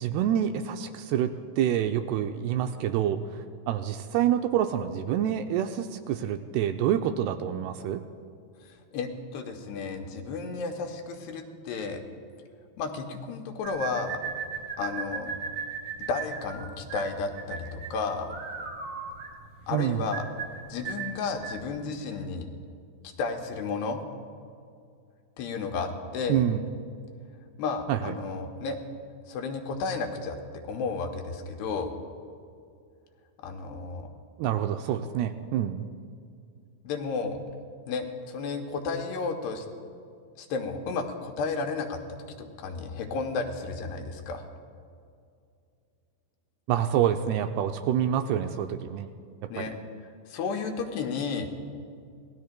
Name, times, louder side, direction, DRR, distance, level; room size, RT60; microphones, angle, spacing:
voice 1, 0.0-3.2 3.7-8.0 19.7-20.1 26.3-26.6 27.9-28.2 34.4-35.8 46.7-49.1 49.6-49.7, right 10 dB, 80° right, 6 dB, 2.4 m, -27 dB
voice 2, 8.6-12.0 12.8-14.2 14.8-15.3 16.1-18.3 19.7-20.2 20.7-22.5 23.2-24.0 25.4-26.4 27.6-28.8 29.3-30.4 30.6-31.9 33.4-34.1 36.8-37.4 37.9-39.7 40.4-42.0 42.4-44.4 49.5-49.8 50.3-51.5, left 4 dB, 75° left, 4 dB, 2.8 m, -32 dB
sound 1, 13.6-21.7, right 6 dB, 60° right, 3.7 m, -37 dB
26.5 x 18.0 x 2.2 m, 2.4 s
omnidirectional pair, 5.0 m